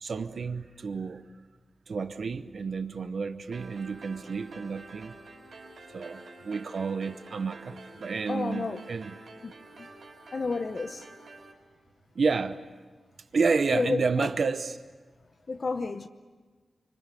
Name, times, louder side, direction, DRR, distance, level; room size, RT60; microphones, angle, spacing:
voice 1, 0.0-1.2 1.9-5.1 5.9-9.2 12.2-12.6 13.3-14.8, right 4 dB, 65° right, 0.8 m, -30 dB
sound 1, 3.5-11.5, right 2 dB, 85° right, 5.5 m, -48 dB
voice 2, 8.3-8.8 9.4-9.5 9.8-9.9 10.3-11.1 13.7-14.3 15.5-16.1, left 3 dB, 50° left, 0.8 m, -30 dB
25.0 x 25.0 x 8.4 m
wide cardioid pair, 100°, 0 cm